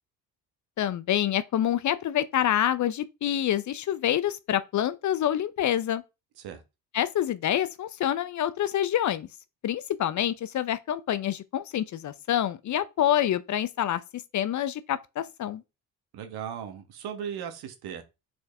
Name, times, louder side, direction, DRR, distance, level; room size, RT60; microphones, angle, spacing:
voice 1, 0.8-6.0 6.9-9.3 9.6-15.6, left 11 dB, 45° left, 0.6 m, -27 dB
voice 2, 16.1-18.0, right 8 dB, 65° right, 1.3 m, -37 dB
6.2 x 4.6 x 3.3 m
hypercardioid pair, 65°, 42 cm